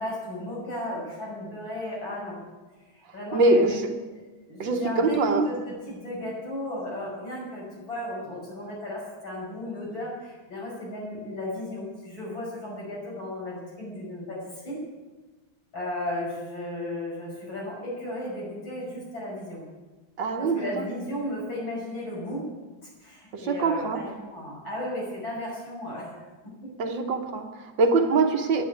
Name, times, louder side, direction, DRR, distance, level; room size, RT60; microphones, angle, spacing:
voice 1, 0.0-2.4 2.9-3.8 4.5-5.6 5.9-14.8 15.7-19.6 20.4-22.5 23.0-26.1 28.0-28.1, left 1 dB, 70° left, -4 dB, 7.1 m, -34 dB
voice 2, 3.3-3.9 4.6-5.5 20.2-20.9 23.3-24.1 26.8-28.6, right 3 dB, 70° right, 5 dB, 1.9 m, -24 dB
11.0 x 10.5 x 9.4 m, 1.2 s
omnidirectional pair, 2.2 m